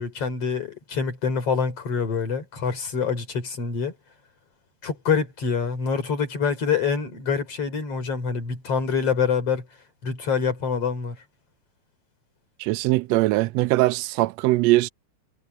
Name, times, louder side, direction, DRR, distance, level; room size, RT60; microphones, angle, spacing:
voice 1, 0.0-3.9 4.8-9.6 10.0-11.2, left 6 dB, 50° left, 4.7 m, -26 dB
voice 2, 12.6-14.9, right 19 dB, 80° right, 1.5 m, -21 dB
omnidirectional pair, 3.5 m